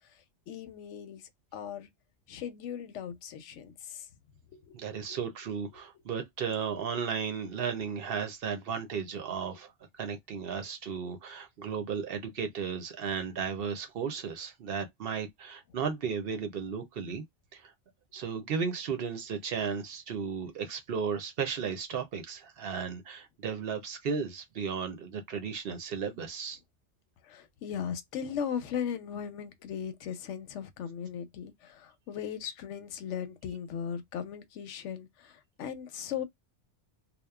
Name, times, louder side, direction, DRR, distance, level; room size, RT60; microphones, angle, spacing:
voice 1, 0.0-1.9 2.3-4.1 4.5-4.8 5.1-5.2 27.2-36.2, left 8 dB, 85° left, 0.9 m, -38 dB
voice 2, 4.7-17.2 17.5-17.7 18.1-26.6, right 6 dB, 60° right, 0.7 m, -35 dB
2.9 x 2.0 x 2.2 m
omnidirectional pair, 1.2 m